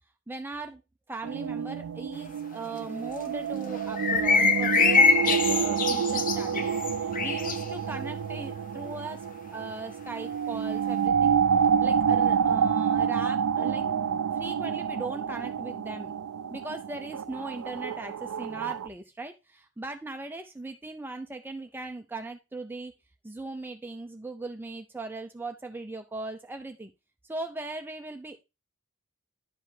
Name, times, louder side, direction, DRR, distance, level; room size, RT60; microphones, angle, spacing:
voice 1, 0.3-0.8 1.1-11.4 11.8-16.1 16.5-22.9 23.2-26.9 27.2-28.4, right 2 dB, 10° right, 6 dB, 0.5 m, -39 dB
sound 1, 1.2-18.9, right 7 dB, 85° right, 0.4 m, -28 dB
sound 2, 4.0-7.6, left 5 dB, 40° left, 0.7 m, -24 dB
10.5 x 5.3 x 3.3 m, 0.27 s
head